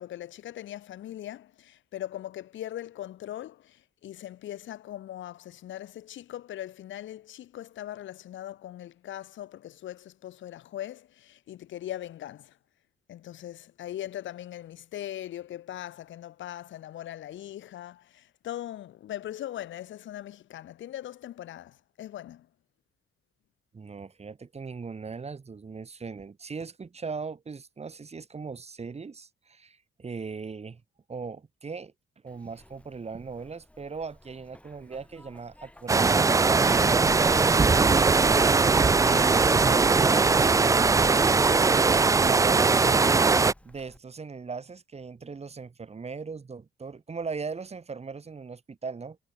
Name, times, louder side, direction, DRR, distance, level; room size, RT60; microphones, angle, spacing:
voice 1, 0.0-12.6 13.1-22.5, left 12 dB, 75° left, 1.6 m, -40 dB
voice 2, 23.7-30.8 31.1-31.9 32.2-36.9 38.1-43.1 43.6-49.2, right 5 dB, 30° right, 2.8 m, -39 dB
Zipper (clothing), 32.3-44.0, left 1 dB, 5° left, 3.5 m, -47 dB
sound 1, 35.9-43.5, right 4 dB, 15° right, 0.4 m, -20 dB
cardioid pair, 90°, 20 cm